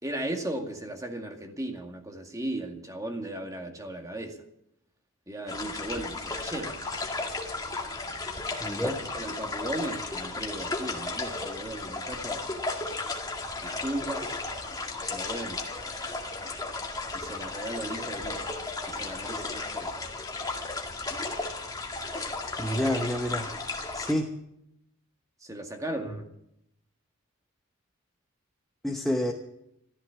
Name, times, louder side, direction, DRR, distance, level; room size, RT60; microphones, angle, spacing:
voice 1, 0.0-4.4 5.3-6.8 8.7-12.5 13.6-14.3 15.1-15.6 17.1-18.4 18.9-19.9 25.4-26.3, right 1 dB, 15° right, 2.1 m, -36 dB
sound 1, 5.5-24.1, left 3 dB, 15° left, 2.1 m, -34 dB
voice 2, 8.6-9.0 22.6-23.5 23.9-24.3 28.8-29.3, equal, ahead, 1.0 m, -28 dB
14.5 x 14.5 x 7.0 m
head